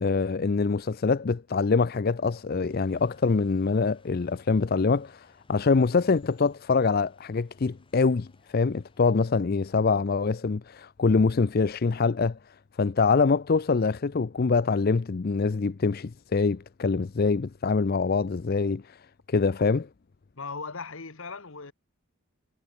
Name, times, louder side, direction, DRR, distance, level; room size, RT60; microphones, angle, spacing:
voice 1, 0.0-8.3 8.5-12.4 12.8-19.0 19.3-19.9, left 4 dB, 45° left, 0.4 m, -24 dB
sound 1, 2.7-9.3, left 2 dB, 25° left, 7.7 m, -63 dB
voice 2, 20.4-21.7, left 4 dB, 65° left, 1.3 m, -38 dB
head